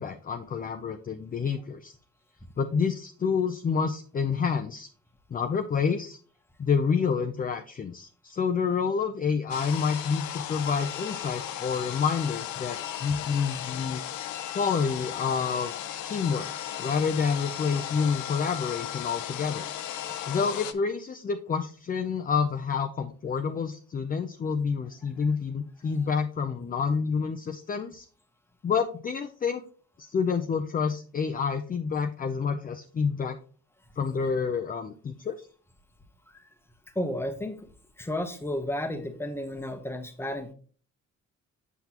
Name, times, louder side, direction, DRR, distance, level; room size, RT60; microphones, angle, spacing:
voice 1, 0.0-1.9 2.6-4.9 5.3-6.2 6.6-14.0 14.5-15.7 16.0-16.5 16.8-19.7 20.3-28.1 28.6-29.6 30.0-33.4 34.0-35.5, left 6 dB, 30° left, 6 dB, 0.5 m, -28 dB
sound 1, 9.5-20.7, left 11 dB, 70° left, 0.6 m, -36 dB
voice 2, 36.9-37.6 38.0-40.5, left 1 dB, 10° left, 7 dB, 0.9 m, -32 dB
7.0 x 5.9 x 2.9 m, 0.42 s
cardioid pair, 90°, 30 cm